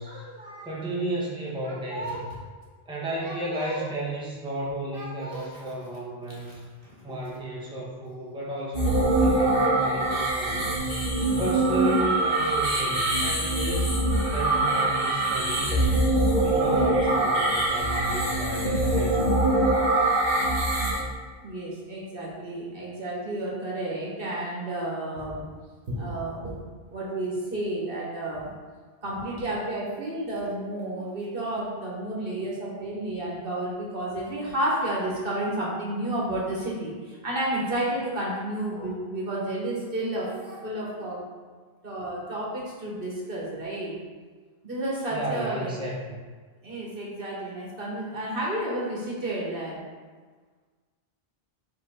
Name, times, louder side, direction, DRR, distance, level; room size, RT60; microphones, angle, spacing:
voice 1, 0.0-0.7 1.6-2.2 3.1-3.8 4.9-5.5 6.4-6.6 6.8-7.1 12.5-12.6 16.5-16.9 21.4-25.5 25.9-26.6 26.9-28.5 29.0-41.2 41.8-44.0 44.6-45.7 46.6-49.9, right 1 dB, 60° right, -5 dB, 1.6 m, -31 dB
voice 2, 0.6-2.3 2.9-6.6 7.0-10.7 11.4-14.0 14.3-16.0 16.4-19.5 45.1-46.2, right 1 dB, 5° right, -5 dB, 1.1 m, -33 dB
sound 1, 8.7-21.0, right 2 dB, 60° left, 2.1 m, -23 dB
5.6 x 5.2 x 3.7 m, 1.5 s
omnidirectional pair, 1.1 m